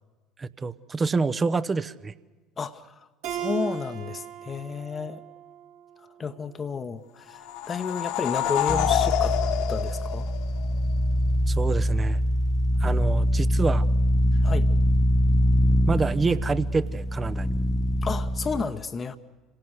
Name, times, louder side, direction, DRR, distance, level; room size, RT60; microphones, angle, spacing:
voice 1, 0.4-2.1 11.5-12.2 12.8-13.8 15.9-17.5, right 4 dB, 25° right, 0.9 m, -27 dB
voice 2, 2.6-5.2 6.0-9.4 9.7-10.3 12.8-13.2 14.4-14.7 18.0-19.2, left 5 dB, 30° left, 1.0 m, -32 dB
Keyboard (musical), 3.2-6.5, right 9 dB, 70° right, 6.1 m, -37 dB
sound 1, 7.3-10.8, left 12 dB, 65° left, 1.6 m, -27 dB
sound 2, 8.7-18.6, equal, 5° left, 0.9 m, -23 dB
27.5 x 17.5 x 8.0 m
hypercardioid pair, 70°, 0 cm